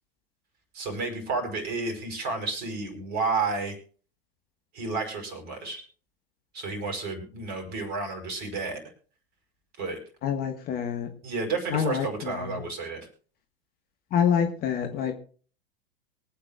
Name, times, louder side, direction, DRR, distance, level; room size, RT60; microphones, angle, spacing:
voice 1, 0.7-3.8 4.7-5.8 6.5-8.8 9.8-10.0 11.2-13.1, right 3 dB, 30° right, 4 dB, 4.9 m, -31 dB
voice 2, 10.2-11.1 11.7-12.5 14.1-15.1, left 8 dB, 30° left, 5 dB, 1.5 m, -26 dB
24.0 x 8.6 x 2.4 m, 0.41 s
figure-of-eight pair, 95°, 30 cm